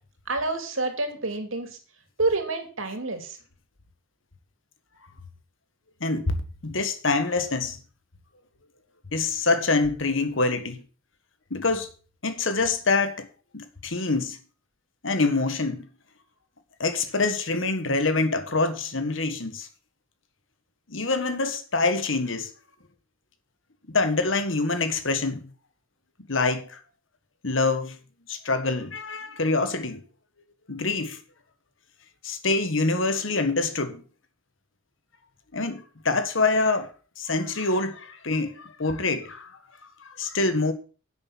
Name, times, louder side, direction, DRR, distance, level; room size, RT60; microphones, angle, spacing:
voice 1, 0.3-1.8 2.2-3.3, right 3 dB, 85° right, 2.7 m, -28 dB
voice 2, 6.0-6.4 6.6-7.8 9.1-10.8 11.5-11.9 12.2-13.3 13.5-14.4 15.0-15.9 16.8-19.7 20.9-22.5 23.9-25.5 26.3-26.8 27.4-28.0 28.3-30.0 30.7-31.2 32.2-34.0 35.5-36.9 37.2-39.5 40.2-40.7, left 3 dB, 75° left, 1.6 m, -25 dB
9.9 x 8.0 x 5.9 m
head